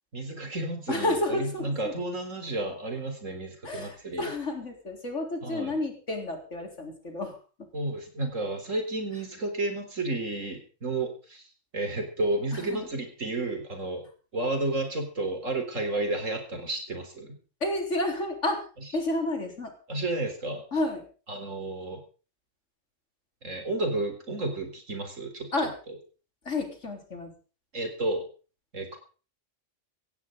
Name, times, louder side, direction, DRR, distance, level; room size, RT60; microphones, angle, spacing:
voice 1, 0.1-4.3 5.4-5.7 7.7-11.5 11.7-14.1 14.3-17.4 19.9-20.6 21.3-22.0 23.4-25.5 27.7-28.2 28.7-29.0, right 2 dB, 85° right, 5 dB, 4.4 m, -31 dB
voice 2, 0.9-1.9 3.6-7.4 12.5-12.9 17.6-18.6 18.9-19.7 20.7-21.1 25.5-25.7 26.4-27.3, left 2 dB, 70° left, 3 dB, 4.2 m, -30 dB
17.0 x 16.0 x 3.9 m, 0.36 s
omnidirectional pair, 1.3 m